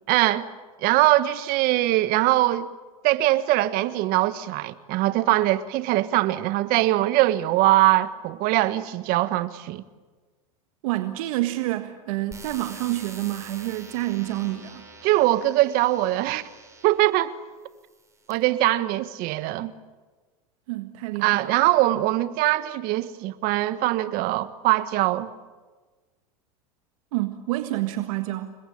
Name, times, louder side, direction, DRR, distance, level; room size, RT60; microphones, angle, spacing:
voice 1, 0.1-0.5 0.8-2.7 3.0-9.8 15.0-16.4 16.8-17.3 18.3-19.7 21.2-25.3, right 16 dB, 50° right, 1.5 m, -22 dB
voice 2, 10.8-14.9 20.7-21.5 27.1-28.6, right 16 dB, 65° right, 1.6 m, -28 dB
sound 1, 12.3-17.1 17.8-18.3, right 3 dB, 15° right, 7.9 m, -46 dB
29.5 x 22.5 x 8.8 m
hypercardioid pair, 100°, 19 cm